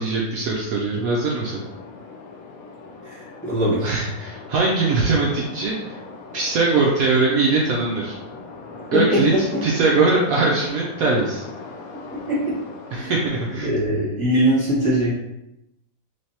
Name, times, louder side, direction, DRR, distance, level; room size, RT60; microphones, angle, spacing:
voice 1, 0.0-1.6 3.8-6.0 6.3-8.2 8.9-11.4 12.9-13.7, right 3 dB, 80° right, -3 dB, 0.7 m, -21 dB
sound 1, 1.4-13.6, left 4 dB, 75° left, 0.8 m, -40 dB
voice 2, 3.0-3.9 8.9-9.2 9.5-9.6 12.1-12.5 12.9-13.1 13.6-15.1, equal, 5° left, -9 dB, 1.2 m, -21 dB
3.3 x 3.1 x 2.8 m, 0.90 s
omnidirectional pair, 2.0 m